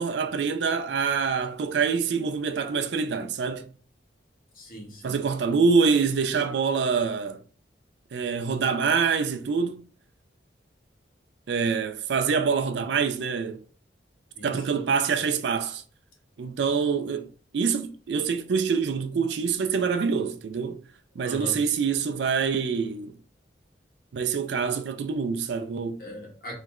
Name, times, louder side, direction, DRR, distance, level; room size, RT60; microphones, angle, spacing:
voice 1, 0.0-3.7 5.0-7.4 8.1-9.8 11.5-13.6 14.4-15.8 16.4-20.8 21.2-23.1 24.1-26.0, right 5 dB, 70° right, 0.4 m, -25 dB
voice 2, 4.6-5.2 14.4-14.8 21.2-21.6 26.0-26.5, equal, 50° left, 1.5 m, -40 dB
3.2 x 3.1 x 3.6 m
head